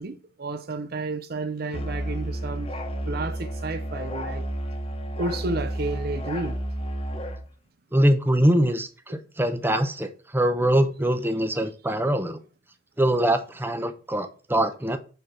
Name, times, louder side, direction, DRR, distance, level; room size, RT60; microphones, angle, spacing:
voice 1, 0.0-2.7 3.1-4.4 5.2-6.6, right 3 dB, 60° right, 0.6 m, -31 dB
Musical instrument, 1.7-7.4, equal, 35° left, 1.3 m, -31 dB
voice 2, 7.9-12.4 13.0-15.0, right 1 dB, 10° right, 0.9 m, -23 dB
8.0 x 4.3 x 6.0 m
head